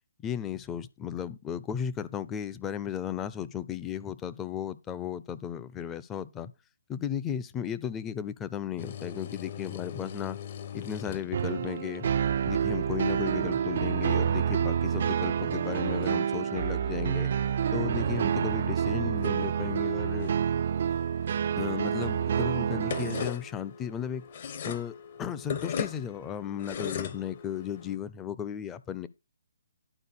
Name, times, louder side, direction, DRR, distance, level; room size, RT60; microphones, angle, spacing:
voice 1, 0.2-6.5 6.9-10.4 10.7-12.1 12.4-17.3 17.7-20.3 21.6-24.2 24.6-29.1, left 9 dB, 15° left, 0.6 m, -35 dB
sound 1, 8.8-28.0, left 7 dB, 45° left, 1.2 m, -42 dB
sound 2, 11.3-23.3, right 8 dB, 50° right, 0.4 m, -28 dB
11.0 x 4.7 x 6.3 m
figure-of-eight pair, 140°, 0 cm